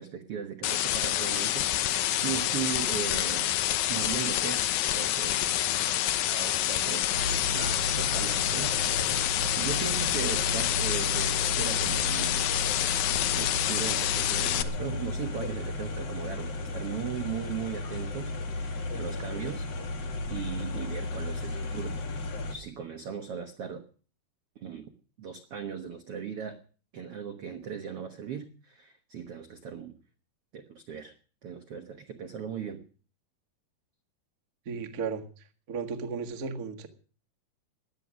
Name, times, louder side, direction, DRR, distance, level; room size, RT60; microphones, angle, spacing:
voice 1, 0.0-3.5 3.9-5.7 6.1-7.2 7.5-8.8 9.5-12.4 13.3-19.7 20.3-22.0 22.5-23.8 24.5-24.9 25.2-26.6 26.9-30.0 30.5-31.1 31.4-32.8, right 8 dB, 70° right, 7 dB, 1.3 m, -38 dB
sound 1, 0.6-14.6, left 12 dB, 90° left, 1.6 m, -27 dB
sound 2, 7.1-22.6, left 2 dB, 65° left, 4.6 m, -34 dB
voice 2, 34.6-36.9, right 5 dB, 50° right, 6 dB, 1.0 m, -35 dB
18.0 x 11.5 x 6.3 m, 0.39 s
omnidirectional pair, 4.7 m